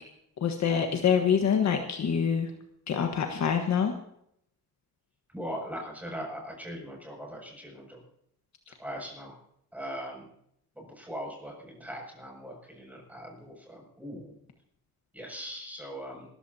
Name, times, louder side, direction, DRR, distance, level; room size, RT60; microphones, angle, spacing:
voice 1, 0.4-2.5 2.9-3.9, left 7 dB, 50° left, 4 dB, 1.5 m, -25 dB
voice 2, 5.3-8.0 8.8-9.3 9.7-10.2 10.8-14.3 15.1-16.3, equal, 5° right, -1 dB, 7.0 m, -40 dB
27.0 x 15.0 x 2.8 m, 0.72 s
cardioid pair, 125°, 35 cm